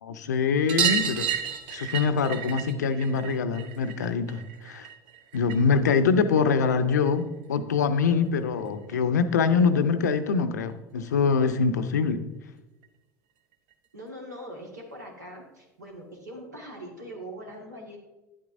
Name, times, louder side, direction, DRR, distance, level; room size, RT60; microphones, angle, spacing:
voice 1, 0.0-1.3 1.7-4.9 5.3-12.3, left 5 dB, 75° left, 10 dB, 0.5 m, -24 dB
sound 1, 0.7-5.8 6.1-7.2 8.6-8.7 8.9-9.0 9.3-9.4 10.7-10.8 11.1-11.2 11.5-11.6 12.8-12.9 13.7-13.8, right 7 dB, 55° right, 0.7 m, -32 dB
voice 2, 13.9-18.0, equal, 85° right, -1 dB, 1.7 m, -42 dB
10.0 x 8.7 x 2.6 m, 1.1 s
figure-of-eight pair, 75°, 9 cm